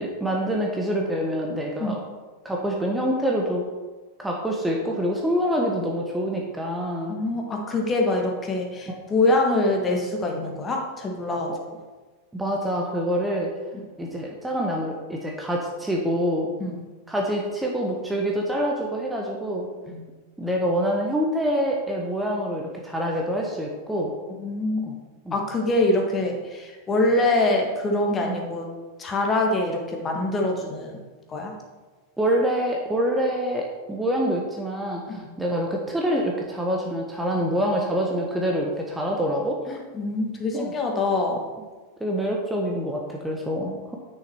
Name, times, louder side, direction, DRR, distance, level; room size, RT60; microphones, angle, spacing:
voice 1, 0.0-2.0 2.4-3.6 4.2-7.1 8.9-9.0 10.4-10.5 11.5-11.6 12.3-13.5 14.0-16.5 17.1-19.7 20.4-24.1 24.8-24.9 25.2-25.3 28.2-28.3 32.2-39.6 40.5-40.7 42.0-44.0, equal, 5° right, -1 dB, 1.3 m, -26 dB
voice 2, 7.1-11.5 16.6-16.8 19.9-20.0 24.4-25.0 25.3-28.6 29.0-31.0 31.3-31.5 35.1-35.3 39.7-41.4, left 2 dB, 20° left, 1 dB, 1.6 m, -24 dB
9.9 x 6.4 x 4.4 m, 1.3 s
figure-of-eight pair, 90°, 0 cm